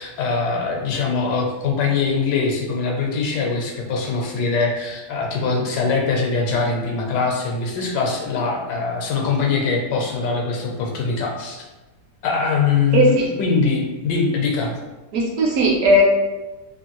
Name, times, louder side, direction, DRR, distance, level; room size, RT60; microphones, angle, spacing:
voice 1, 0.0-11.6 12.2-14.7, left 4 dB, 85° left, 0 dB, 1.3 m, -22 dB
voice 2, 12.9-13.2 15.1-16.0, right 1 dB, 65° right, -2 dB, 0.9 m, -16 dB
3.0 x 2.6 x 2.9 m, 1.1 s
omnidirectional pair, 1.8 m